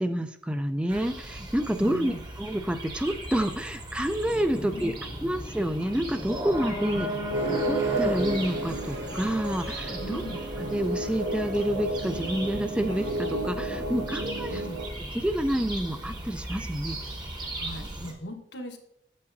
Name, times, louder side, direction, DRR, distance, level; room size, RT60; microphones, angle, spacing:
voice 1, 0.0-4.9 5.2-7.1 7.6-10.2 10.6-14.6 15.1-17.0, right 1 dB, 5° right, 8 dB, 0.3 m, -28 dB
sound 1, 0.9-18.1, right 1 dB, 25° right, 0.9 m, -37 dB
voice 2, 1.8-2.2 4.6-4.9 6.9-7.1 10.0-10.4 14.5-14.8 17.6-18.8, equal, 80° left, 4 dB, 1.2 m, -39 dB
sound 2, 4.2-10.1, left 1 dB, 25° left, 0.7 m, -43 dB
sound 3, 7.3-14.8, right 1 dB, 70° right, 0.9 m, -32 dB
8.4 x 7.9 x 2.6 m, 0.71 s
head